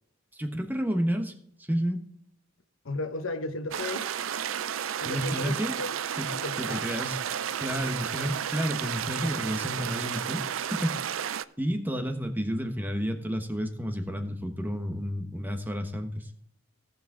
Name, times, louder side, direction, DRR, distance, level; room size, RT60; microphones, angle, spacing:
voice 1, 0.3-1.3 1.6-2.0 5.0-5.7 6.1-6.3 6.6-7.2 7.6-10.4 10.7-11.3 11.6-16.3, equal, 10° right, 1.1 m, -31 dB
voice 2, 2.8-4.1 5.0-5.9 6.3-6.8, left 2 dB, 85° left, 0.9 m, -35 dB
sound 1, 3.7-11.4, right 9 dB, 85° right, 0.5 m, -32 dB
17.0 x 5.9 x 3.8 m
head